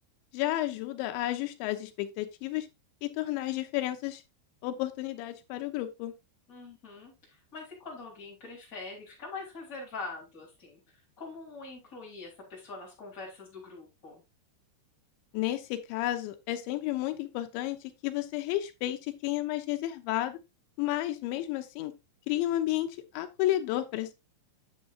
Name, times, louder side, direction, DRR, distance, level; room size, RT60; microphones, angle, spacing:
voice 1, 0.3-2.7 3.0-4.2 4.6-6.2 15.3-20.4 20.8-21.9 22.3-22.9 23.1-24.1, left 14 dB, 90° left, 7 dB, 3.2 m, -32 dB
voice 2, 6.5-14.2, left 3 dB, 20° left, -3 dB, 3.6 m, -44 dB
9.3 x 7.2 x 2.6 m, 0.24 s
omnidirectional pair, 5.1 m